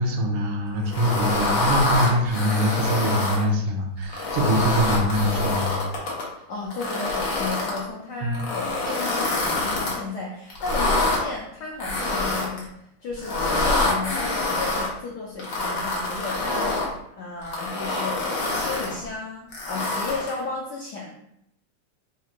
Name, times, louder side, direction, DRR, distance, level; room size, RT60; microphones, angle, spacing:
voice 1, 0.0-5.7 8.2-8.4, equal, 85° right, 1 dB, 1.7 m, -23 dB
sound 1, 0.9-3.4 4.0-6.2 6.7-7.8 8.3-10.0 10.5-11.2 11.8-12.6 13.2-14.9 15.4-16.9 17.4-18.9 19.5-20.4, left 2 dB, 55° left, 0.9 m, -26 dB
voice 2, 6.4-16.8 17.1-21.1, left 3 dB, 80° left, -2 dB, 0.9 m, -34 dB
4.4 x 2.4 x 2.8 m, 0.76 s
omnidirectional pair, 2.4 m